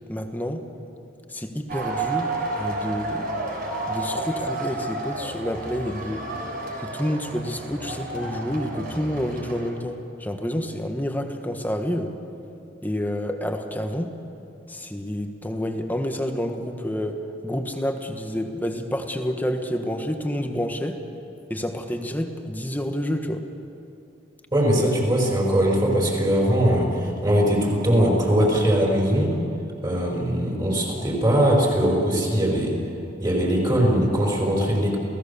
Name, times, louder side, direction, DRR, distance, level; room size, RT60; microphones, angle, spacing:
voice 1, 0.1-0.6 1.3-3.4 3.9-6.3 6.8-12.1 12.8-14.1 14.7-21.0 21.5-23.4, equal, 10° left, 5 dB, 1.4 m, -29 dB
sound 1, 1.7-9.7, right 2 dB, 55° right, 3.9 m, -31 dB
voice 2, 24.5-29.3 29.8-32.7 33.2-35.0, equal, 25° right, -1 dB, 5.0 m, -21 dB
28.5 x 17.5 x 7.0 m, 2.7 s
head